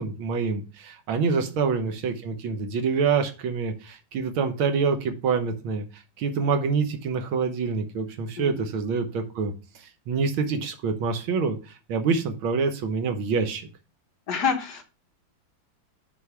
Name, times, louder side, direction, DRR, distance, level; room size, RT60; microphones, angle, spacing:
voice 1, 0.0-11.6 11.9-13.7, right 5 dB, 80° right, 7 dB, 1.8 m, -26 dB
voice 2, 14.3-14.8, left 6 dB, 55° left, 4 dB, 1.7 m, -27 dB
6.9 x 4.6 x 5.8 m, 0.32 s
omnidirectional pair, 2.2 m